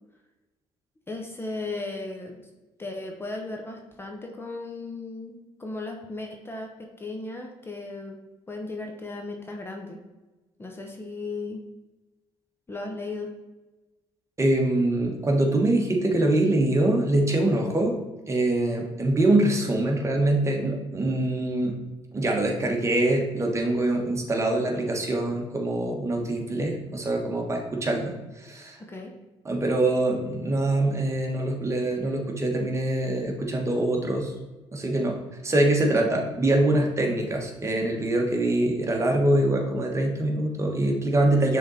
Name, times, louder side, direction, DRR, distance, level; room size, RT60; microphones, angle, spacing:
voice 1, 1.1-2.5 2.8-8.2 8.5-10.0 10.6-11.6 12.7-13.3 28.8-29.1, left 2 dB, 20° left, 2 dB, 0.8 m, -36 dB
voice 2, 14.4-17.9 18.3-21.7 22.1-28.1 28.4-28.8 29.4-34.3 34.7-35.2 35.4-41.6, right 1 dB, 25° right, 1 dB, 1.4 m, -24 dB
6.2 x 3.9 x 4.2 m, 1.1 s
cardioid pair, 85°, 11 cm